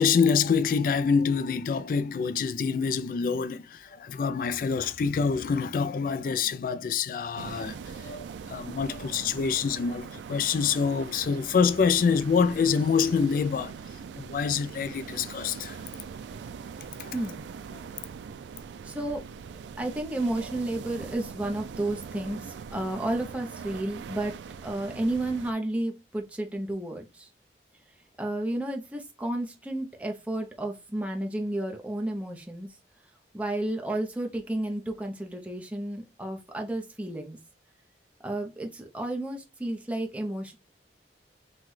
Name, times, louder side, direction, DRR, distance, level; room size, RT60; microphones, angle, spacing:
voice 1, 0.0-13.7 14.2-15.8 17.0-17.1, left 6 dB, 50° left, 0.3 m, -26 dB
sound 1, 7.4-25.5, right 6 dB, 85° right, 0.3 m, -42 dB
voice 2, 17.1-17.4 18.8-19.2 19.8-24.4 24.6-27.3 28.2-32.7 33.3-37.4 38.2-40.6, right 1 dB, 10° right, 0.6 m, -32 dB
5.7 x 2.2 x 3.1 m
head